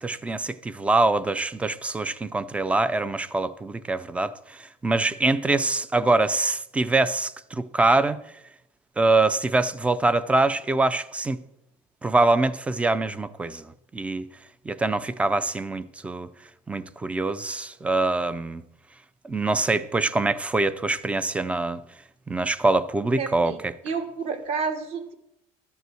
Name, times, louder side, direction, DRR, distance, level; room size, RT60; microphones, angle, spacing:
voice 1, 0.0-8.2 9.0-11.4 12.0-13.7 13.9-14.3 14.7-16.3 16.7-18.6 19.2-21.8 22.3-23.7, right 2 dB, 10° right, 0.4 m, -24 dB
voice 2, 23.2-23.6 23.8-25.1, right 5 dB, 45° right, 1.4 m, -30 dB
12.5 x 5.5 x 7.6 m
cardioid pair, 165°, 14 cm